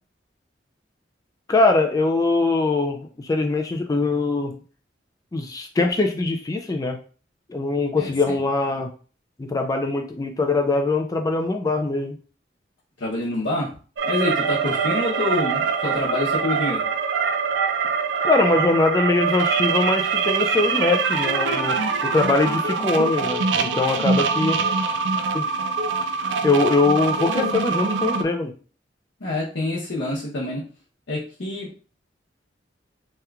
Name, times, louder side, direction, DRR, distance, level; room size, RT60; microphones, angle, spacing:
voice 1, 1.5-4.5 5.3-7.0 7.5-8.9 9.4-12.2 18.2-24.6 25.3-25.5 26.4-28.5, left 3 dB, 20° left, 4 dB, 0.3 m, -22 dB
voice 2, 8.0-8.4 13.0-13.7 14.0-16.8 24.2-24.3 29.2-30.6 31.1-31.7, left 2 dB, 80° left, -6 dB, 0.8 m, -26 dB
sound 1, 14.0-28.2, right 5 dB, 90° right, 0.4 m, -24 dB
3.4 x 2.9 x 2.3 m, 0.39 s
head